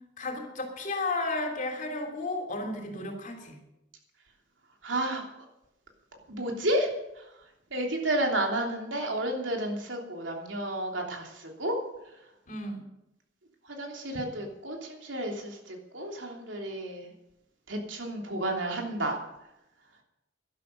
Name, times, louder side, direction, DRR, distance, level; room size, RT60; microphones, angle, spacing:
voice 1, 0.2-3.6 12.5-12.8, left 2 dB, 45° left, 4 dB, 3.2 m, -33 dB
voice 2, 4.8-5.2 6.3-6.9 7.7-11.3 11.6-11.8 13.8-15.5 15.9-17.0 17.7-19.2, right 1 dB, 85° right, 1 dB, 3.2 m, -31 dB
12.0 x 11.5 x 6.8 m, 0.88 s
head